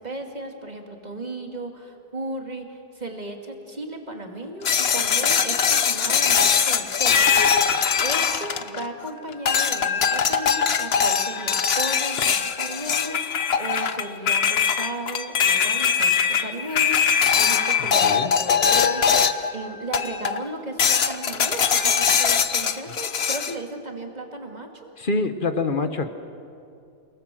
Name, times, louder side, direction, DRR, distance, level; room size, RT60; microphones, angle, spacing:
voice 1, 0.0-7.1 7.5-7.7 8.0-16.1 16.4-24.7, right 2 dB, 20° right, 3 dB, 2.5 m, -35 dB
sound 1, 4.6-9.0 9.5-19.5 19.9-20.4 20.8-23.5, left 7 dB, 50° left, 0.8 m, -21 dB
voice 2, 17.8-18.3 25.0-26.1, left 3 dB, 30° left, 9 dB, 1.1 m, -26 dB
28.5 x 19.0 x 7.8 m, 2.5 s
omnidirectional pair, 2.0 m